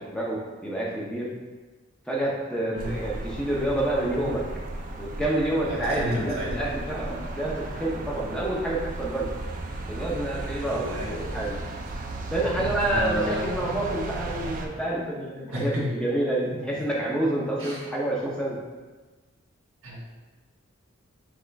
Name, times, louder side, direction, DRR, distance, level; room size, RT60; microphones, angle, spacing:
voice 1, 0.0-1.3 2.1-4.5 5.0-9.3 9.9-11.6 12.3-18.6, right 1 dB, 5° left, -4 dB, 0.6 m, -28 dB
sound 1, 2.8-14.7, right 2 dB, 40° right, 0.4 m, -35 dB
voice 2, 5.7-6.7 10.6-11.2 12.3-13.7 15.5-15.9 17.6-17.8 19.8-20.2, equal, 90° right, -4 dB, 1.3 m, -32 dB
6.0 x 2.4 x 3.3 m, 1.3 s
head